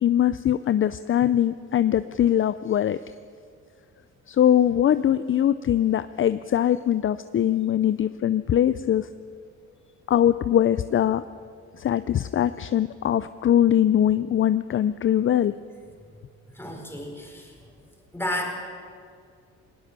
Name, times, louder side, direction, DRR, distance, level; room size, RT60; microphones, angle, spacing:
voice 1, 0.0-3.0 4.3-9.1 10.1-11.2 11.8-15.5, left 10 dB, 45° left, 14 dB, 0.5 m, -22 dB
voice 2, 16.6-17.5 18.1-18.6, left 1 dB, 10° left, 1 dB, 4.8 m, -31 dB
19.5 x 19.5 x 6.9 m, 2.2 s
cardioid pair, 90°, 30 cm